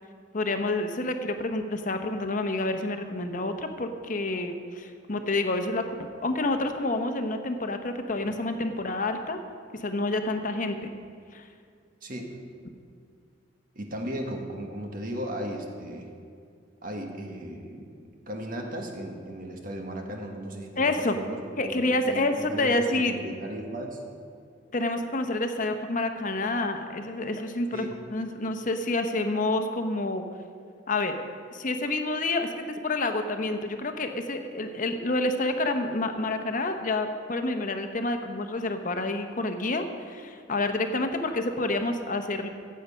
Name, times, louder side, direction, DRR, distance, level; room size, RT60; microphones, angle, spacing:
voice 1, 0.3-9.4 9.7-10.8 11.3-11.5 20.8-21.2 21.6-23.1 24.7-30.2 30.9-31.2 31.5-42.5, left 2 dB, 45° left, 7 dB, 0.9 m, -28 dB
voice 2, 12.0-12.4 13.7-16.1 16.8-24.0 27.7-28.0, right 1 dB, 50° right, 2 dB, 1.5 m, -36 dB
15.0 x 7.6 x 5.6 m, 2.3 s
head